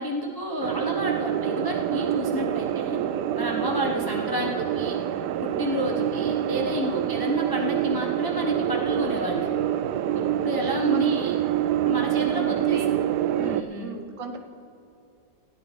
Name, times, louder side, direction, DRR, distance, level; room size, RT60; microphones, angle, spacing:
voice 1, 0.0-3.0 3.3-4.9 5.6-9.5 10.4-11.4 11.8-13.0 13.3-14.0, left 1 dB, 20° left, -1 dB, 0.5 m, -30 dB
sound 1, 0.6-13.6, right 11 dB, 75° right, 1.0 m, -26 dB
voice 2, 6.8-7.1 10.0-11.1 12.2-12.9 13.7-14.4, right 4 dB, 55° right, 3 dB, 0.3 m, -37 dB
19.0 x 13.0 x 3.1 m, 2.6 s
omnidirectional pair, 2.0 m